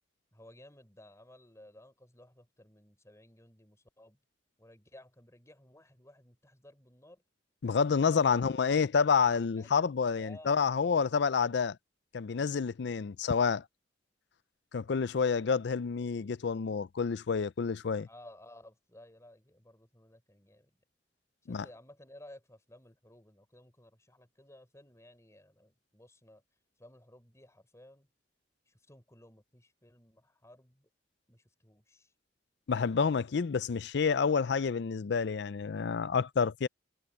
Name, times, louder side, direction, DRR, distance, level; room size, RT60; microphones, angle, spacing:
voice 1, 0.3-4.2 4.6-7.2 9.4-9.9 10.1-11.3 18.1-20.7 21.4-26.4 26.8-28.1 28.7-30.9 31.3-32.1, left 1 dB, 15° left, 5.2 m, -56 dB
voice 2, 7.6-11.8 12.1-13.6 14.7-18.1 21.5-21.7 32.7-36.7, left 5 dB, 65° left, 0.5 m, -28 dB
head